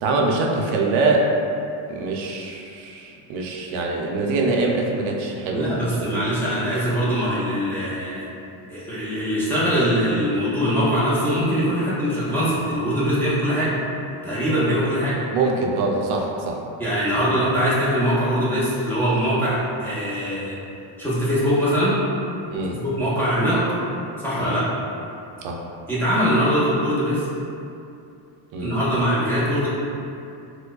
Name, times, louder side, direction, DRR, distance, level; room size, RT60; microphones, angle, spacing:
voice 1, 0.0-1.3 1.9-6.3 15.3-16.6 22.5-22.8 24.4-24.5 25.4-25.6 28.5-28.8, right 3 dB, 70° right, 0 dB, 0.6 m, -24 dB
voice 2, 5.5-8.2 8.7-13.8 14.2-15.2 16.8-20.6 21.0-22.1 22.8-23.8 24.2-24.7 25.9-27.3 28.6-29.7, equal, 5° left, -11 dB, 0.5 m, -22 dB
4.5 x 2.2 x 2.3 m, 2.7 s
cardioid pair, 140°, 49 cm